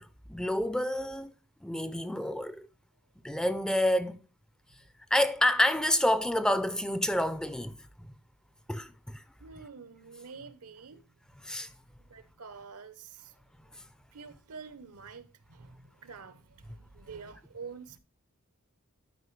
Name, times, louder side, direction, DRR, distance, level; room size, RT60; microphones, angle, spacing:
voice 1, 0.0-1.3 1.6-2.7 3.2-4.2 5.1-8.1 8.7-9.2 11.4-11.7, left 1 dB, 5° left, 0.3 m, -28 dB
voice 2, 9.4-11.0 12.0-13.3 14.1-18.0, right 5 dB, 85° right, 0.8 m, -47 dB
12.0 x 4.9 x 3.1 m
head